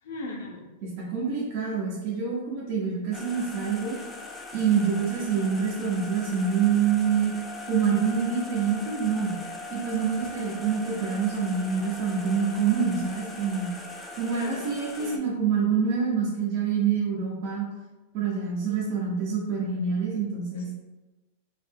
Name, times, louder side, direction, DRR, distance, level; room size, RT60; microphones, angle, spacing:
voice 1, 0.0-0.7 14.3-14.7 15.0-15.3 20.5-20.7, left 2 dB, 75° left, -1 dB, 0.7 m, -38 dB
voice 2, 0.8-4.0 4.5-7.3 7.7-9.4 9.7-13.7 14.2-17.6 18.1-20.7, right 6 dB, 50° right, -6 dB, 0.7 m, -26 dB
sound 1, 3.1-15.2, left 2 dB, 10° left, 0.3 m, -40 dB
2.4 x 2.0 x 3.4 m, 1.1 s
supercardioid pair, 140°, 0 cm